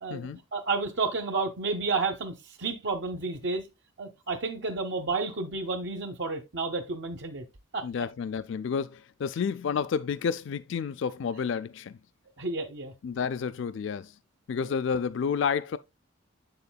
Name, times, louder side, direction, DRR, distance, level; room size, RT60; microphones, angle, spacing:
voice 1, 0.0-3.7 4.0-7.5 7.7-7.8 12.4-12.9 14.6-14.7, right 3 dB, 60° right, 0.9 m, -31 dB
voice 2, 7.8-12.0 13.0-14.2 14.5-15.8, left 6 dB, 60° left, 0.3 m, -30 dB
7.8 x 6.8 x 2.2 m
head